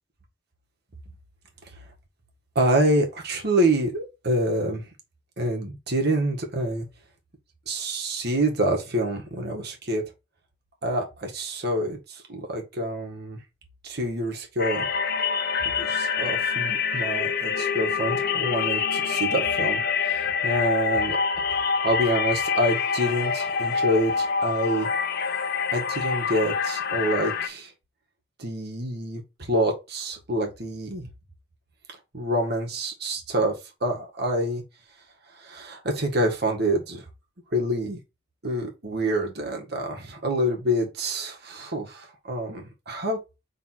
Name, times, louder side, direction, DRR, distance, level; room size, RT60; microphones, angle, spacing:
voice 1, 2.6-4.8 5.4-6.9 7.7-10.0 10.8-13.4 13.8-14.9 15.8-21.2 21.8-24.9 25.7-27.7 28.4-31.1 32.1-34.6 35.4-37.0 37.5-38.0 38.4-43.2, right 1 dB, 60° right, 1.8 m, -27 dB
sound 1, 14.6-27.5, left 6 dB, 55° left, 0.8 m, -26 dB
4.7 x 3.8 x 5.7 m
head